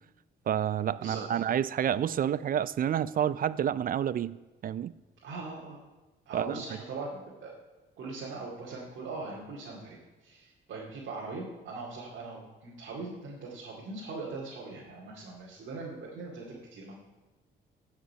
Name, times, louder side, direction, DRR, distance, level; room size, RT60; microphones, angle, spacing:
voice 1, 0.5-4.4 4.6-4.9 6.3-6.6, right 9 dB, 45° right, 17 dB, 0.4 m, -29 dB
voice 2, 1.0-1.4 5.2-5.8 6.3-7.6 8.0-16.9, right 3 dB, 70° right, -4 dB, 2.3 m, -41 dB
14.5 x 5.9 x 5.6 m, 1.1 s
cardioid pair, 90°, 20 cm